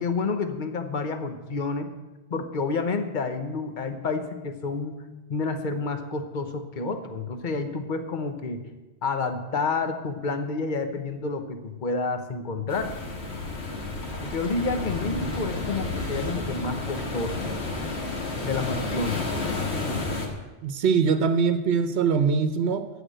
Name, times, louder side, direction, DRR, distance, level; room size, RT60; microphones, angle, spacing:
voice 1, 0.0-1.9 2.3-5.0 5.3-8.6 9.0-12.9 14.2-17.5 18.4-19.3, left 3 dB, 50° left, 7 dB, 1.1 m, -29 dB
sound 1, 12.7-20.3, left 3 dB, 85° left, 2.0 m, -31 dB
voice 2, 20.6-22.9, right 5 dB, 75° right, 9 dB, 1.0 m, -22 dB
14.5 x 5.0 x 9.0 m, 1.1 s
omnidirectional pair, 1.1 m